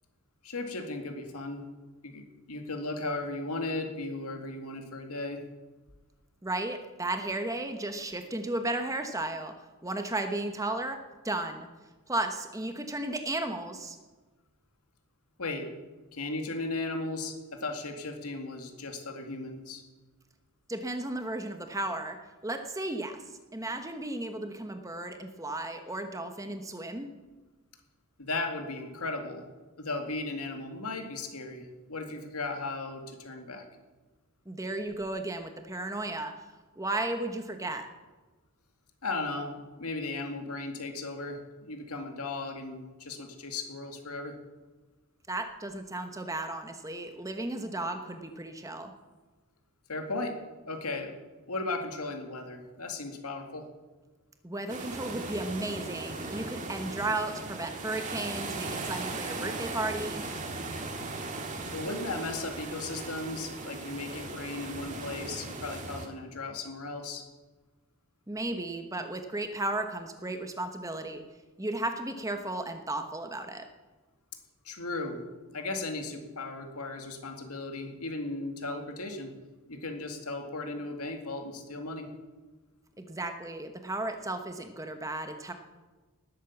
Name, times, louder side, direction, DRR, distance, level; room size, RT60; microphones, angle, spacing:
voice 1, 0.4-1.7 2.0-5.4 15.4-15.7 16.1-19.8 28.2-29.4 29.8-33.6 39.0-44.4 49.9-50.4 50.7-51.1 51.5-53.7 61.7-67.2 74.6-75.2 75.5-79.3 79.7-82.1, left 2 dB, 85° left, 5 dB, 2.1 m, -36 dB
voice 2, 6.4-9.5 9.8-11.7 12.1-14.0 20.7-22.2 22.4-23.2 23.5-27.1 34.5-36.3 36.8-37.9 45.3-48.9 54.4-60.2 68.3-71.2 71.6-73.7 83.0-85.5, right 2 dB, 15° right, 6 dB, 1.1 m, -34 dB
sound 1, 54.7-66.1, right 3 dB, 35° right, 1.9 m, -38 dB
19.0 x 8.4 x 7.2 m, 1.2 s
head